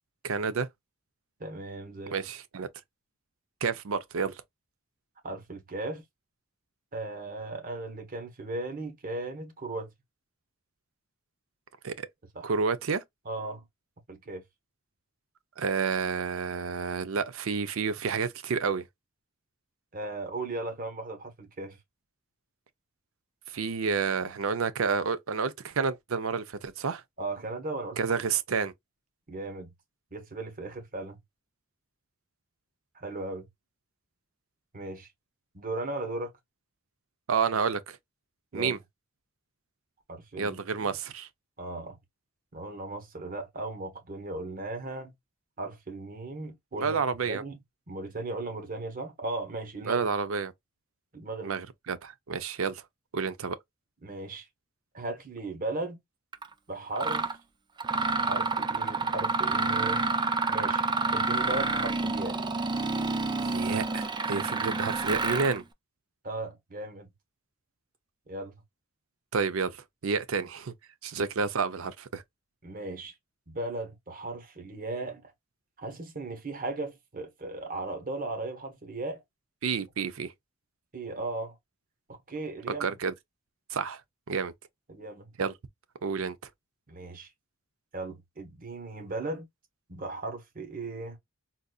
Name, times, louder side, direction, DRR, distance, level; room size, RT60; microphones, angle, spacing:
voice 1, 0.2-0.7 2.1-2.7 3.6-4.4 11.8-12.1 12.4-13.0 15.6-18.9 23.5-27.0 28.0-28.7 37.3-38.0 38.5-38.8 40.4-41.3 46.8-47.4 49.9-50.5 51.4-52.8 53.1-53.6 63.4-65.6 69.3-70.7 71.0-72.2 79.6-80.3 82.8-83.1 83.7-84.0 84.3-84.5 85.4-85.5 86.0-86.4, right 5 dB, 80° right, 0.6 m, -30 dB
voice 2, 1.4-2.2 5.2-6.0 6.9-9.9 12.3-12.5 13.2-13.6 14.1-14.4 19.9-21.8 27.2-28.0 29.3-29.7 30.1-31.2 32.9-33.5 34.7-35.1 35.5-36.3 38.5-38.8 40.1-40.9 41.6-42.0 42.5-45.1 45.6-47.6 47.9-50.0 51.1-51.5 54.0-54.5 54.9-56.0 56.7-57.3 58.2-60.0 60.5-60.8 61.1-62.4 66.2-67.1 68.3-68.5 72.6-73.1 73.5-75.3 75.8-79.2 80.9-81.6 82.1-82.8 84.9-85.3 86.9-87.3 87.9-89.5 89.9-91.2, right 2 dB, 45° right, 1.1 m, -37 dB
Mechanisms, 56.3-56.5 57.0-57.3 57.8-65.6, right 3 dB, 20° right, 0.4 m, -28 dB
4.0 x 2.5 x 2.3 m
head